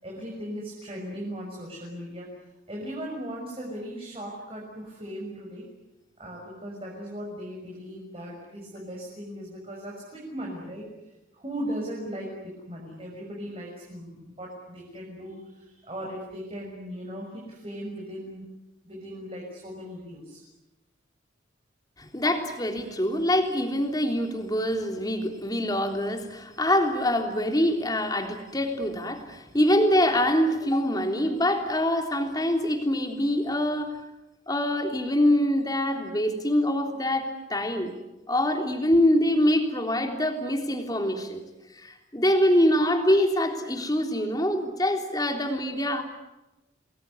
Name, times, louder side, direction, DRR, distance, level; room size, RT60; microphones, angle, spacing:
voice 1, 0.0-5.7 6.2-10.9 11.3-18.5 18.8-20.4, equal, 30° right, -2 dB, 6.5 m, -38 dB
voice 2, 22.0-34.0 34.5-37.9 38.3-41.4 41.7-46.0, left 1 dB, 20° left, 4 dB, 3.5 m, -24 dB
28.5 x 21.0 x 9.8 m, 1.0 s
head